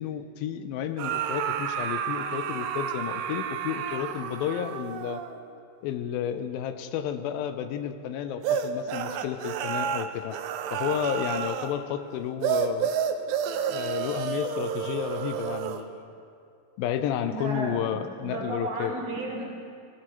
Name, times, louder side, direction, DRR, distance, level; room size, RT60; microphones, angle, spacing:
voice 1, 0.0-5.2 5.8-10.4 10.7-12.9 13.7-16.2 16.8-18.9, left 9 dB, 80° left, 9 dB, 2.3 m, -31 dB
sound 1, 1.0-5.4 8.4-11.7 12.4-15.8, right 8 dB, 85° right, 2.4 m, -30 dB
voice 2, 17.3-19.5, right 2 dB, 65° right, -1 dB, 2.4 m, -34 dB
18.0 x 15.5 x 3.0 m, 2.4 s
omnidirectional pair, 4.2 m